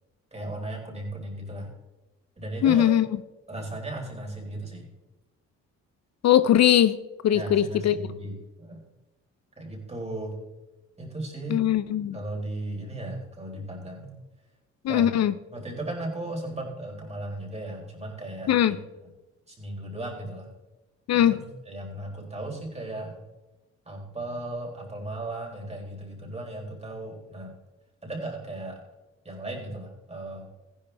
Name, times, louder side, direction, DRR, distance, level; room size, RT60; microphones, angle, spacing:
voice 1, 0.3-1.7 2.4-2.9 3.5-4.9 7.3-8.8 9.6-10.4 11.0-11.7 12.1-14.1 14.9-15.1 15.5-18.8 19.5-20.5 21.1-23.3 23.9-27.5 28.0-28.8 29.2-30.5, right 1 dB, 20° right, 0 dB, 4.1 m, -36 dB
voice 2, 2.6-3.1 6.2-7.0 7.2-8.0 11.5-12.2 14.8-15.3 18.5-18.8 21.1-21.4, left 11 dB, 60° left, 14 dB, 0.6 m, -20 dB
15.0 x 11.0 x 3.4 m, 1.1 s
cardioid pair, 90°, 30 cm